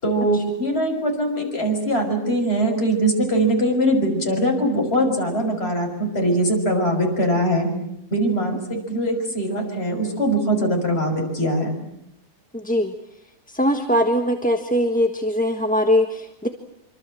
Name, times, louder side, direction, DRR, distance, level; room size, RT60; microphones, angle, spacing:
voice 1, 0.0-7.7 8.1-11.8, right 1 dB, 40° left, 2 dB, 6.2 m, -22 dB
voice 2, 12.5-12.9 13.5-16.5, equal, 5° left, 5 dB, 1.3 m, -21 dB
26.0 x 25.5 x 7.7 m, 0.79 s
omnidirectional pair, 1.7 m